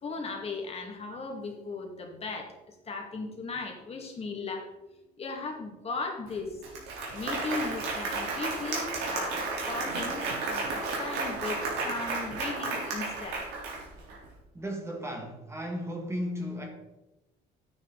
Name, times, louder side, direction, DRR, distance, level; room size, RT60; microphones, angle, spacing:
voice 1, 0.0-2.5 2.9-4.6 5.2-6.5 7.1-11.6 11.8-13.4, left 3 dB, 35° left, 2.1 m, -37 dB
Applause, 6.3-6.4 6.6-14.2, right 3 dB, 85° right, 3.6 m, -33 dB
voice 2, 14.5-16.7, equal, 15° right, 1.7 m, -35 dB
10.0 x 9.4 x 4.0 m
cardioid pair, 110°, 17 cm